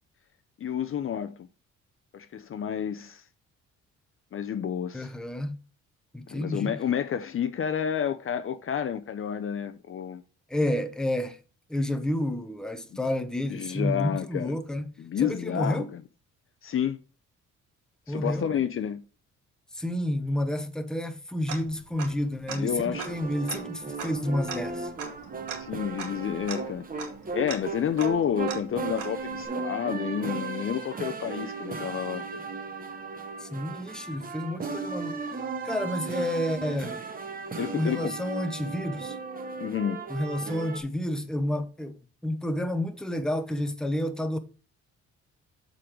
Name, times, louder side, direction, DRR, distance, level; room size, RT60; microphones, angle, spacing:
voice 1, 0.6-1.5 2.1-3.2 4.3-5.1 6.3-10.2 13.5-14.5 15.0-16.0 16.6-17.0 18.1-19.0 22.5-23.1 25.5-26.9 27.3-32.2 37.6-38.1 39.6-40.0, left 8 dB, 45° left, 0.6 m, -30 dB
voice 2, 4.9-5.6 6.1-6.8 10.5-11.4 11.7-14.9 15.2-15.9 18.1-18.5 19.7-24.9 33.4-35.2 35.6-37.0 37.7-39.2 40.1-42.0 42.2-44.4, left 1 dB, ahead, 0.8 m, -30 dB
Tick-tock, 21.5-22.2 22.5-22.6 23.0-29.5, right 6 dB, 90° right, 2.0 m, -41 dB
sound 1, 22.9-40.8, right 4 dB, 30° right, 1.2 m, -36 dB
7.4 x 4.0 x 4.9 m
cardioid pair, 90°, 30 cm